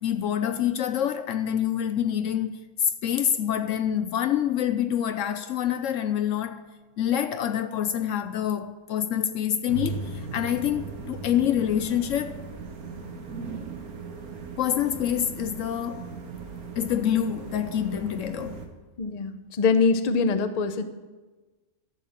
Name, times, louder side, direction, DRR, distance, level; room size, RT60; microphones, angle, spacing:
voice 1, 0.0-6.7 7.0-12.4 14.6-16.1 16.8-18.7, left 10 dB, 70° left, 0.9 m, -26 dB
sound 1, 9.7-18.7, right 4 dB, 90° right, 1.7 m, -38 dB
voice 2, 19.0-20.8, left 5 dB, 40° left, 0.7 m, -23 dB
13.0 x 6.9 x 7.4 m
omnidirectional pair, 1.5 m